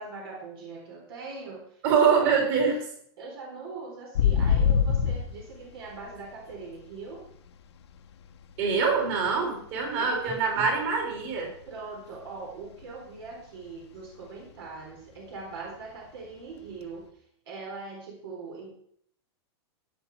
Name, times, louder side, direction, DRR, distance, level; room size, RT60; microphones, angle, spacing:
voice 1, 0.0-1.8 2.1-2.3 3.2-7.2 10.0-10.1 11.7-17.0 17.5-18.7, right 4 dB, 60° right, -1 dB, 4.0 m, -41 dB
voice 2, 1.8-2.8 8.6-11.5, right 5 dB, 35° right, 1 dB, 3.7 m, -24 dB
sound 1, 4.1-7.5 7.8-10.1 10.3-10.7 11.0-12.9 13.2-13.3 13.7-14.1 14.4-14.5 16.7-16.8, left 7 dB, 85° left, 1.4 m, -26 dB
15.5 x 9.4 x 4.8 m, 0.63 s
supercardioid pair, 175°, 14 cm